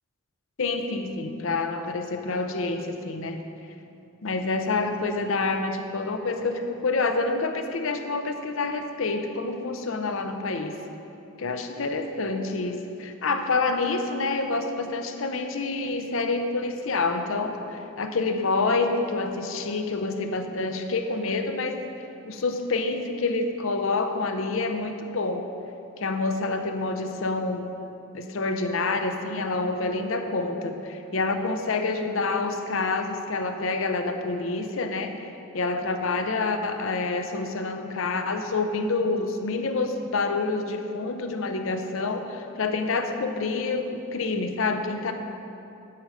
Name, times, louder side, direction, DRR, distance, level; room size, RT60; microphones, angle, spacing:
voice 1, 0.6-3.5 4.2-10.7 11.4-21.8 22.2-25.5 26.0-27.7 28.1-45.1, left 3 dB, 65° left, 6 dB, 0.6 m, -27 dB
9.7 x 6.5 x 4.9 m, 2.7 s
head